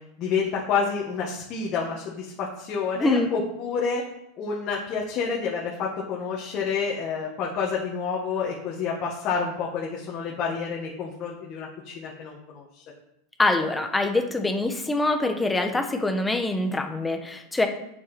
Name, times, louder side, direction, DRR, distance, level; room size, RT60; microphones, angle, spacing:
voice 1, 0.2-4.1 4.4-12.8, left 5 dB, 40° left, -3 dB, 1.7 m, -29 dB
voice 2, 3.0-3.3 13.4-17.7, left 2 dB, 10° left, 6 dB, 1.0 m, -24 dB
8.4 x 6.9 x 4.3 m, 0.82 s
supercardioid pair, 135°, 0 cm